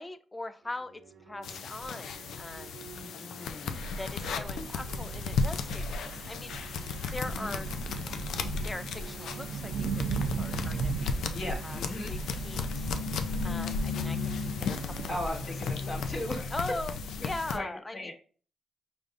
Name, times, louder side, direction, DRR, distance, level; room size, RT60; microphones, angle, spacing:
voice 1, 0.0-3.0 4.0-6.6 7.1-7.7 8.6-9.9 10.3-11.8 12.1-12.8 13.4-15.2 16.5-17.0 17.2-18.1, left 2 dB, 15° left, 12 dB, 0.3 m, -40 dB
sound 1, 0.6-17.0, right 6 dB, 60° right, 0.8 m, -53 dB
sound 2, 1.4-17.6, left 4 dB, 85° left, 0.4 m, -35 dB
voice 2, 2.8-3.8 7.3-7.6 11.3-12.1 15.1-16.6 17.2-18.1, left 1 dB, 40° left, -2 dB, 1.2 m, -38 dB
sound 3, 3.7-16.5, right 5 dB, 85° right, 0.5 m, -38 dB
5.2 x 3.4 x 2.5 m, 0.40 s
wide cardioid pair, 150°, 0 cm